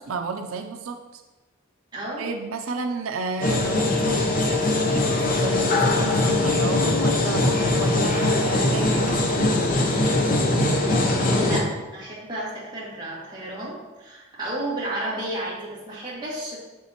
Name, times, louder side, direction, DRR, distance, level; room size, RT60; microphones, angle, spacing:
voice 1, 0.1-1.2 2.2-9.6, right 4 dB, 85° right, 4 dB, 0.5 m, -32 dB
voice 2, 1.9-2.3 10.9-16.6, right 1 dB, 20° right, -7 dB, 1.9 m, -32 dB
sound 1, 3.4-11.6, left 2 dB, 40° left, 0.7 m, -21 dB
6.9 x 6.5 x 2.9 m, 1.2 s
head